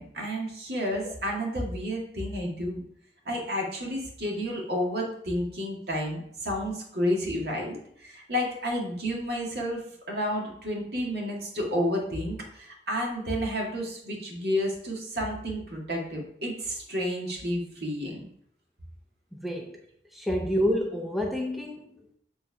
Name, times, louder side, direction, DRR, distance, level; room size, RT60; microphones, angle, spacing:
voice 1, 0.0-2.8 3.3-18.3, equal, 65° right, -1 dB, 2.0 m, -31 dB
voice 2, 19.3-19.8 20.1-22.2, equal, ahead, 1 dB, 0.6 m, -29 dB
7.4 x 3.9 x 4.6 m, 0.69 s
head